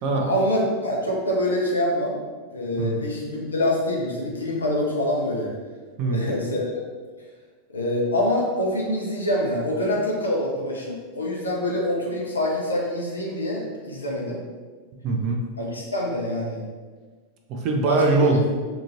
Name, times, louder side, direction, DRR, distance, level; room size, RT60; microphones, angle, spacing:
voice 1, 0.1-2.1 2.5-5.5 6.1-6.7 7.7-14.4 15.6-16.6 17.9-18.0, left 1 dB, 75° left, -2 dB, 0.6 m, -25 dB
voice 2, 6.0-6.3 15.0-15.4 17.5-18.4, right 3 dB, 40° right, 1 dB, 0.4 m, -22 dB
2.8 x 2.5 x 2.6 m, 1.4 s
figure-of-eight pair, 90°, 0 cm